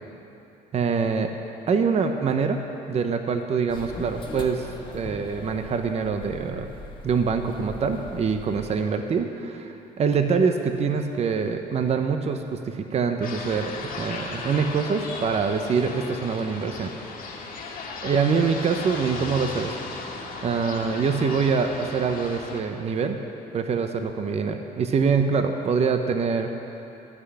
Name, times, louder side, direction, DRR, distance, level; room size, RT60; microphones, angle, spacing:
voice 1, 0.7-1.3 1.7-2.6 2.9-4.7 4.9-6.7 7.0-16.9 18.0-20.0 20.4-23.2 23.5-26.5, right 5 dB, 40° right, 6 dB, 0.8 m, -25 dB
sound 1, 3.7-8.7, left 2 dB, 30° left, 1.6 m, -41 dB
sound 2, 13.2-22.6, left 4 dB, 60° left, 1.8 m, -36 dB
13.5 x 5.9 x 9.7 m, 2.9 s
cardioid pair, 110°, 17 cm